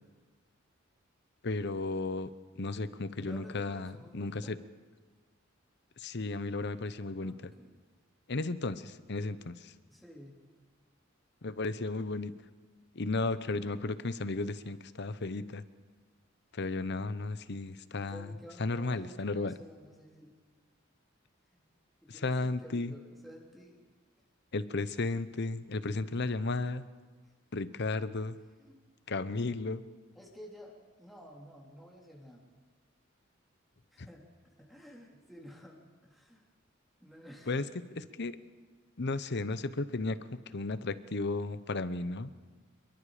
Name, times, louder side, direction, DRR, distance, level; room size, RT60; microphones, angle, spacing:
voice 1, 1.4-2.3 2.6-4.5 6.0-7.5 8.3-9.7 11.4-12.3 12.9-15.6 16.5-18.3 18.6-19.5 22.2-22.9 24.5-26.9 27.5-28.4 29.1-29.8 34.0-34.1 37.5-37.7 38.2-38.4 39.0-42.3, left 3 dB, 55° left, 14 dB, 0.9 m, -34 dB
voice 2, 3.2-4.5 7.2-7.8 9.9-10.4 18.1-20.4 21.5-21.7 22.0-23.9 27.2-27.3 28.6-28.8 30.1-32.5 33.9-36.4 37.0-37.7, equal, ahead, -3 dB, 3.5 m, -52 dB
27.0 x 22.5 x 5.0 m, 1.4 s
head